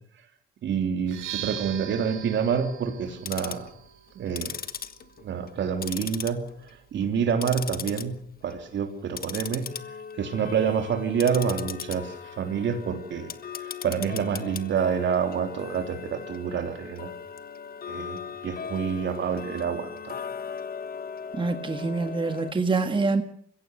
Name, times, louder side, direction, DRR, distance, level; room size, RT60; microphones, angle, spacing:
voice 1, 0.6-3.7 4.1-4.6 5.2-8.2 8.4-9.7 10.2-13.3 13.6-17.1 17.9-20.1, right 7 dB, 65° right, 3.3 m, -28 dB
sound 1, 1.0-8.8, right 11 dB, 90° right, 3.3 m, -43 dB
Tick-tock, 3.1-3.7 4.3-5.6 5.8-6.7 7.0-8.0 8.4-8.7 9.1-22.5, left 7 dB, 50° left, 1.3 m, -38 dB
voice 2, 21.3-23.2, right 3 dB, 25° right, 1.7 m, -25 dB
22.0 x 16.0 x 8.1 m
cardioid pair, 90°, 20 cm